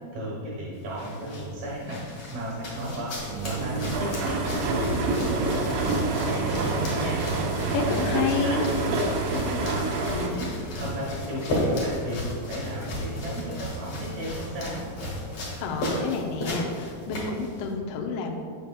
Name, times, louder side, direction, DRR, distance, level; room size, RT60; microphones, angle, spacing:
voice 1, 0.1-3.1 3.4-7.2 7.7-14.8, equal, 70° right, -5 dB, 2.4 m, -35 dB
sound 1, 0.7-17.7, left 1 dB, 60° left, 1.8 m, -34 dB
sound 2, 3.3-10.3, right 3 dB, 85° right, 2.3 m, -27 dB
voice 2, 7.7-8.6 15.6-18.4, left 5 dB, 85° left, 2 dB, 2.4 m, -29 dB
7.6 x 6.7 x 2.2 m, 2.1 s
omnidirectional pair, 5.5 m